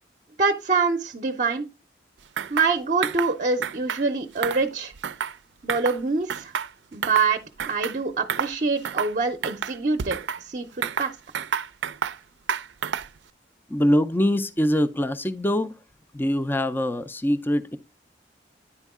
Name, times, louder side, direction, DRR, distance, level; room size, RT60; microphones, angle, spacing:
voice 1, 0.4-1.7 2.5-4.9 5.6-6.5 6.9-10.2 10.4-11.1, right 4 dB, 45° right, 0.6 m, -25 dB
sound 1, 2.4-2.7 3.0-3.3 3.6-4.0 4.4-5.4 5.7-6.0 6.3-7.3 7.6-8.0 8.3-8.5 8.8-9.1 9.4-10.4 10.8-12.2 12.5-13.2, right 7 dB, 85° right, 0.4 m, -29 dB
voice 2, 13.7-15.7 16.1-17.8, left 1 dB, 10° left, 0.4 m, -23 dB
9.8 x 4.5 x 3.6 m
head